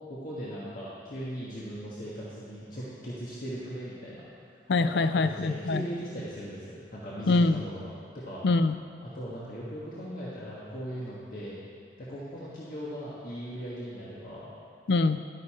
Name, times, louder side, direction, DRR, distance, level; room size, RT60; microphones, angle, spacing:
voice 1, 0.1-4.2 5.1-8.4 9.0-11.6 12.0-14.5, equal, 50° left, -8 dB, 1.6 m, -38 dB
voice 2, 4.7-5.9 7.3-7.7 8.4-8.8 14.9-15.2, left 3 dB, 70° left, 11 dB, 0.4 m, -24 dB
11.0 x 9.6 x 4.3 m, 2.3 s
head